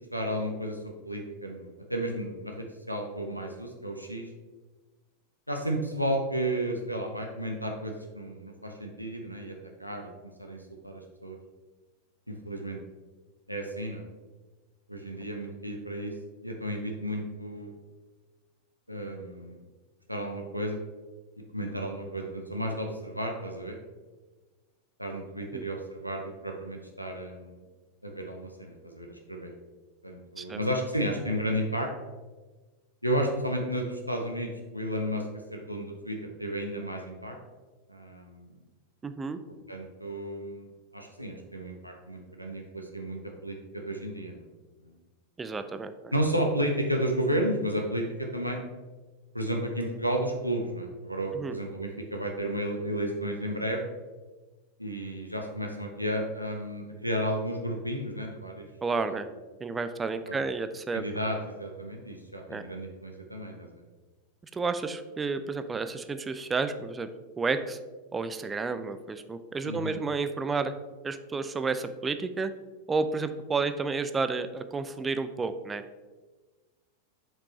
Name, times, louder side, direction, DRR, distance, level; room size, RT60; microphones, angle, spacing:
voice 1, 0.1-4.3 5.5-9.5 9.8-10.1 10.4-11.4 12.3-12.8 13.5-14.0 14.9-16.1 16.4-17.7 18.9-19.6 20.1-20.8 21.5-23.8 25.0-27.6 28.0-29.5 30.0-31.9 33.0-35.2 35.5-37.4 37.9-38.5 39.7-44.5 44.8-44.9 46.1-48.6 49.3-53.8 54.8-58.6 59.1-59.2 60.3-60.4 60.9-63.8 69.6-70.0, equal, 90° right, 1 dB, 0.7 m, -32 dB
voice 2, 39.0-39.4 45.4-46.1 51.3-51.6 58.8-59.3 59.6-61.0 62.5-62.6 64.5-67.1 67.4-67.8 68.1-70.7 71.0-72.5 72.9-75.8, right 4 dB, 15° right, 10 dB, 0.4 m, -31 dB
7.4 x 5.1 x 3.2 m, 1.3 s
figure-of-eight pair, 90°, 0 cm